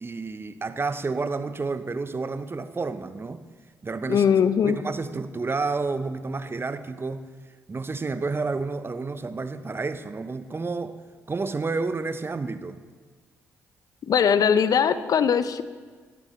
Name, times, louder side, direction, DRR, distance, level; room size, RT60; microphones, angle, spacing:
voice 1, 0.0-3.4 3.8-4.3 4.6-7.2 7.7-11.0 11.3-12.8, right 3 dB, 30° right, 12 dB, 0.9 m, -30 dB
voice 2, 4.1-4.8 14.1-15.6, left 7 dB, 55° left, 14 dB, 0.7 m, -20 dB
19.0 x 14.0 x 3.2 m, 1.5 s
hypercardioid pair, 40°, 7 cm